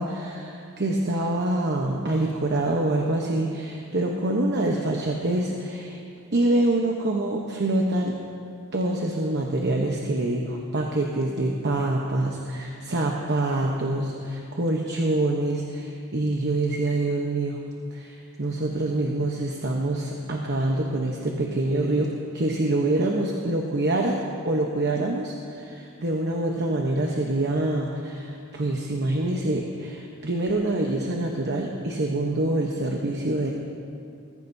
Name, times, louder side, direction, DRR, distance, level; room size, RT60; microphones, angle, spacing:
voice 1, 0.0-6.0 6.3-8.1 8.7-17.6 17.9-33.5, right 2 dB, 55° right, 0 dB, 1.0 m, -26 dB
20.5 x 14.0 x 2.7 m, 2.5 s
head